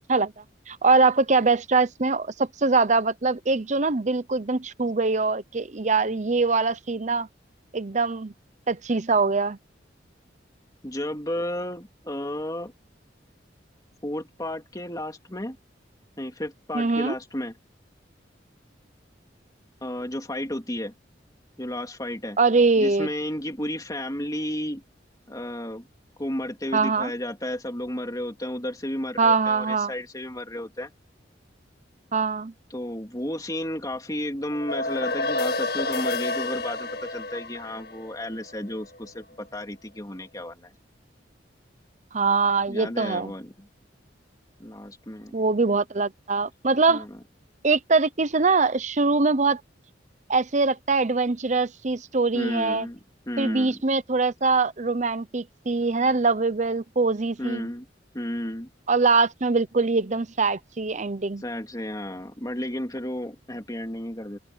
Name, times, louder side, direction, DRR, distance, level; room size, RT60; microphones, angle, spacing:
voice 1, 0.7-7.3 7.7-8.3 8.7-9.6 16.7-17.1 22.4-23.1 26.7-27.1 29.2-29.9 32.1-32.5 42.1-43.3 45.3-47.0 47.6-49.6 50.3-52.9 53.4-57.7 58.9-61.4, right 4 dB, 40° right, 0.8 m, -23 dB
voice 2, 10.8-12.7 14.0-15.6 16.2-17.5 19.8-20.9 21.6-22.4 22.8-24.8 25.3-25.9 26.2-30.9 32.7-40.7 42.7-43.7 44.6-45.3 46.9-47.2 52.3-53.0 53.3-53.8 57.4-57.9 58.1-58.7 61.4-64.4, left 1 dB, 20° left, 2.9 m, -33 dB
sound 1, 34.5-39.1, left 2 dB, 60° left, 1.9 m, -30 dB
open air
head